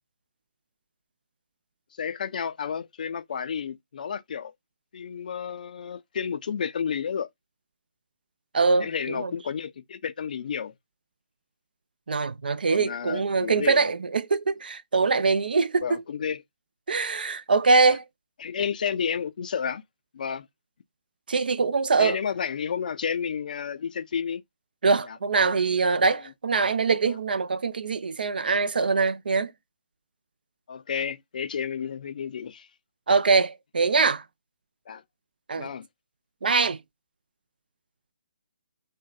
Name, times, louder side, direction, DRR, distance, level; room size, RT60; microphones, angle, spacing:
voice 1, 2.0-4.5 4.9-7.3 8.8-10.7 12.7-13.9 15.8-16.4 17.9-18.0 18.4-19.8 20.1-20.5 22.0-24.4 25.1-25.2 26.1-26.2 27.1-27.2 30.7-32.7 34.9-35.0 35.6-35.9, left 7 dB, 55° left, 0.3 m, -31 dB
voice 2, 8.5-9.3 12.1-15.8 16.9-18.0 21.3-22.2 24.8-29.5 33.1-34.2 35.5-35.7 36.4-36.8, right 4 dB, 70° right, 0.4 m, -23 dB
2.6 x 2.2 x 2.3 m
figure-of-eight pair, 140°, 5 cm